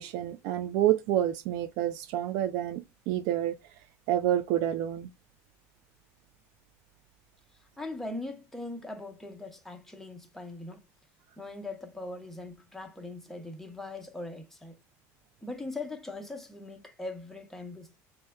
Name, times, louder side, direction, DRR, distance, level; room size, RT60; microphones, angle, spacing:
voice 1, 0.0-3.5 4.1-5.1, right 12 dB, 70° right, 0.4 m, -28 dB
voice 2, 7.8-10.8 11.4-14.8 15.4-18.0, left 2 dB, 5° left, 0.7 m, -40 dB
6.4 x 2.2 x 2.2 m
supercardioid pair, 120°, 7 cm